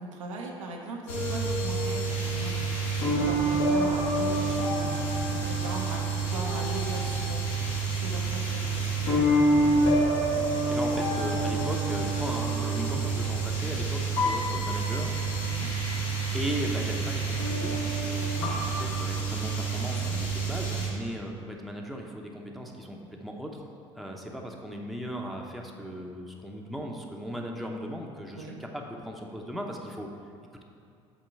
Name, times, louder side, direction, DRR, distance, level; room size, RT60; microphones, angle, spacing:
voice 1, 0.0-2.5 3.0-9.2 15.5-15.7 28.3-28.6, right 2 dB, 80° right, 0 dB, 0.8 m, -39 dB
sound 1, 1.1-20.9, right 2 dB, 65° left, 1.6 m, -27 dB
voice 2, 10.2-15.2 15.7-16.0 16.3-23.7 23.9-30.1, equal, ahead, 0 dB, 0.8 m, -37 dB
8.0 x 3.8 x 4.7 m, 2.5 s
hypercardioid pair, 60°, 16 cm